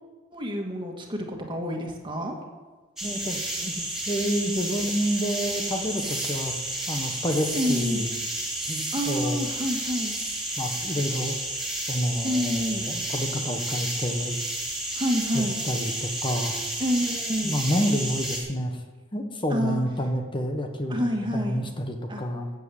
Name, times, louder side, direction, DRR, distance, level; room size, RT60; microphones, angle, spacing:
voice 1, 0.3-2.3 7.5-8.0 8.9-10.2 12.2-12.9 15.0-15.6 16.8-17.6 19.5-19.8 20.9-21.6 22.1-22.2, equal, 25° right, 1 dB, 2.0 m, -28 dB
voice 2, 3.0-8.1 8.7-9.4 10.6-11.4 11.9-14.4 15.3-16.6 17.4-18.8 19.1-22.5, equal, 25° left, 5 dB, 1.2 m, -29 dB
sound 1, 3.0-18.4, right 1 dB, ahead, 3.0 m, -31 dB
13.5 x 7.5 x 8.6 m, 1.3 s
head